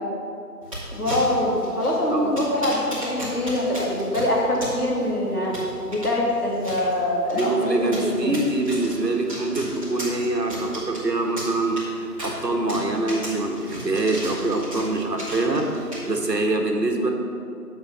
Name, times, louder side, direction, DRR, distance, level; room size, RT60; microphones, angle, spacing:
sound 1, 0.6-16.4, right 1 dB, 20° right, 2.3 m, -37 dB
voice 1, 0.9-5.5 5.9-8.3, left 1 dB, 65° left, -3 dB, 2.9 m, -24 dB
voice 2, 7.3-17.1, right 2 dB, 80° right, 2 dB, 1.7 m, -24 dB
10.5 x 6.9 x 5.8 m, 2.6 s
figure-of-eight pair, 175°, 49 cm